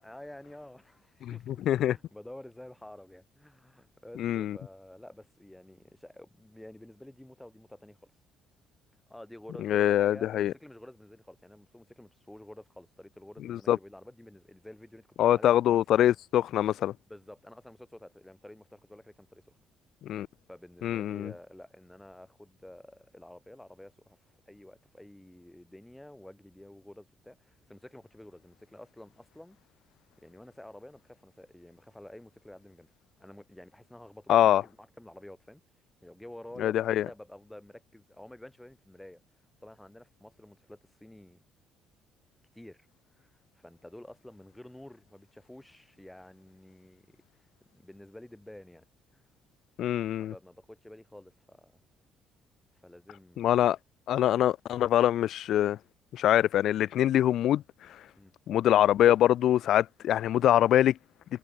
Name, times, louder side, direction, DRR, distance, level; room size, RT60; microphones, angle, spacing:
voice 1, 0.0-8.1 9.1-15.8 17.1-19.5 20.5-24.2 24.4-29.6 30.2-32.9 33.2-35.6 36.0-39.2 39.6-41.4 42.5-42.9 43.1-47.2 47.7-48.8 49.1-49.2 50.0-51.8 52.8-53.5 58.2-58.3, left 1 dB, 5° left, 3.2 m, -50 dB
voice 2, 1.5-2.0 4.2-4.6 9.6-10.5 13.5-13.8 15.2-16.9 20.1-20.3 20.8-21.3 34.3-34.6 36.6-37.1 49.8-50.3 53.4-53.8 54.1-55.8 56.1-57.6 58.5-60.9, left 12 dB, 65° left, 0.5 m, -24 dB
cardioid pair, 90°, 0 cm